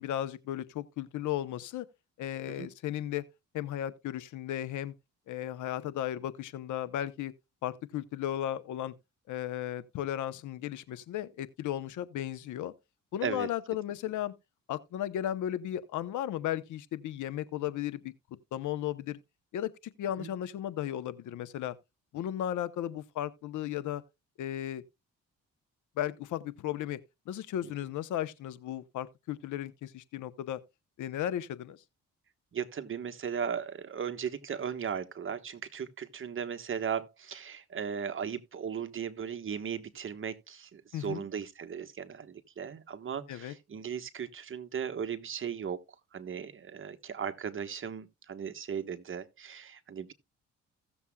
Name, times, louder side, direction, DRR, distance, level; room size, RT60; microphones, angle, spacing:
voice 1, 0.0-1.8 2.2-3.2 3.5-4.9 5.3-7.3 7.6-8.9 9.3-12.7 13.1-14.3 14.7-18.1 18.5-19.2 19.5-19.7 20.0-21.8 22.1-24.0 24.4-24.8 26.0-27.0 27.3-30.6 31.0-31.8 40.9-41.2 43.3-43.5, left 11 dB, 75° left, 0.8 m, -35 dB
voice 2, 32.5-45.8 46.1-50.1, right 7 dB, 40° right, 1.2 m, -37 dB
16.5 x 7.1 x 2.3 m
cardioid pair, 90°, 30 cm